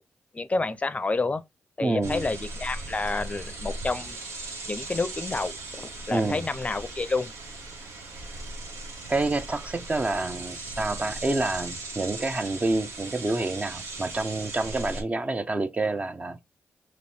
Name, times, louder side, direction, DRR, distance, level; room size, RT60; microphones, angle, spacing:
voice 1, 0.3-1.4 1.8-4.2 4.7-7.3, left 3 dB, 30° left, 0.5 m, -29 dB
voice 2, 1.8-2.3 6.1-6.4 9.1-16.4, right 2 dB, 30° right, 0.7 m, -28 dB
sound 1, 2.0-15.0, right 2 dB, 80° right, 1.2 m, -38 dB
3.1 x 3.0 x 4.2 m
cardioid pair, 60°, 5 cm